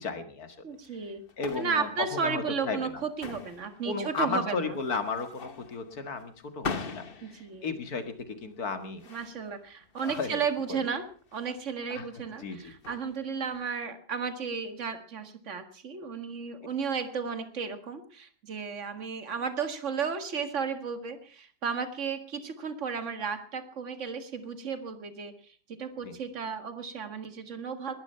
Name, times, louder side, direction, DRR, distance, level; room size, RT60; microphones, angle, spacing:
voice 1, 0.0-0.6 1.4-2.8 3.8-8.1 8.4-9.0 10.0-10.4 11.9-12.0 12.4-12.7 26.0-26.1, left 4 dB, 70° left, 8 dB, 2.4 m, -34 dB
voice 2, 0.6-1.2 1.6-4.8 7.2-7.7 9.1-11.1 11.3-27.9, right 5 dB, 50° right, 9 dB, 2.1 m, -34 dB
sound 1, 0.7-13.7, left 5 dB, 40° left, 1.3 m, -43 dB
20.5 x 11.5 x 5.6 m, 0.43 s
omnidirectional pair, 1.7 m